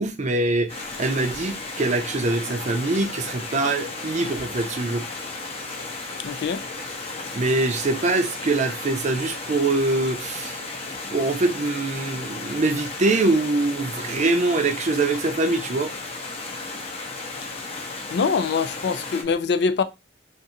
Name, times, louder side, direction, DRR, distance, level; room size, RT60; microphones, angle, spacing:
voice 1, 0.0-5.0 7.3-10.6 11.1-15.9, right 2 dB, 40° right, 0.5 m, -23 dB
Stream, 0.7-19.2, left 3 dB, 35° left, 0.7 m, -34 dB
voice 2, 6.2-6.6 18.1-19.8, left 5 dB, 65° left, 0.4 m, -23 dB
2.6 x 2.4 x 4.0 m
head